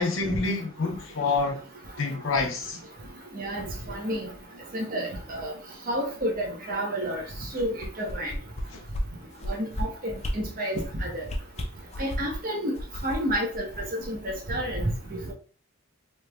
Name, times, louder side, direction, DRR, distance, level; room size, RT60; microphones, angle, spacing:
voice 1, 0.0-1.6 2.0-2.8 8.7-8.8, left 3 dB, 70° left, 0.8 m, -27 dB
voice 2, 3.4-4.3 4.7-5.5 5.9-7.2 7.5-8.3 9.5-11.3 12.0-12.7 13.0-13.7 14.1-14.9, equal, 45° right, 0.9 m, -30 dB
sound 1, 7.6-8.6 8.9-9.0 9.4-9.8 10.2-10.3 10.7-10.9 11.2-12.4 12.8-14.4 14.7-14.8, left 1 dB, 30° left, 0.6 m, -33 dB
3.2 x 3.1 x 2.3 m
head